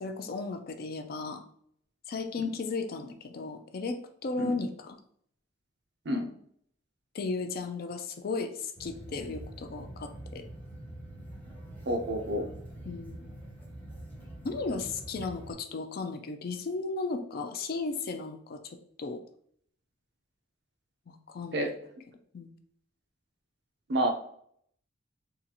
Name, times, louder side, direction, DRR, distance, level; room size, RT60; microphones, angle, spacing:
voice 1, 0.0-1.4 2.1-5.0 7.1-10.4 12.9-13.3 14.4-19.2 21.1-21.8 22.3-22.5, left 3 dB, 50° left, 7 dB, 0.4 m, -35 dB
sound 1, 8.8-15.5, right 1 dB, 10° left, 0.7 m, -45 dB
voice 2, 11.9-12.5 21.5-21.7 23.9-24.1, right 1 dB, 55° right, 4 dB, 0.6 m, -29 dB
3.8 x 2.5 x 2.8 m, 0.65 s
head